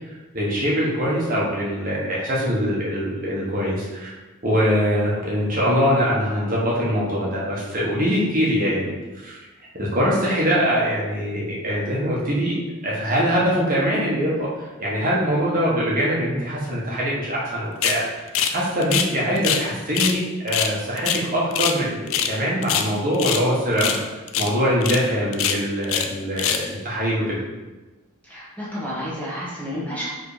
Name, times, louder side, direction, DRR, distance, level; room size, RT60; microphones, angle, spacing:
voice 1, 0.3-4.1 4.4-9.4 9.8-12.6 12.8-27.4, equal, 40° right, -6 dB, 1.4 m, -23 dB
sound 1, 17.8-18.0 18.3-18.6 18.8-19.7 19.9-20.2 20.5-21.8 22.1-22.4 22.6-23.4 23.8-24.0 24.3-24.5 24.8-25.0 25.3-26.1 26.4-26.7, left 8 dB, 65° left, 0.5 m, -23 dB
voice 2, 28.2-30.1, equal, 5° left, -8 dB, 1.6 m, -30 dB
5.0 x 3.9 x 5.0 m, 1.2 s
head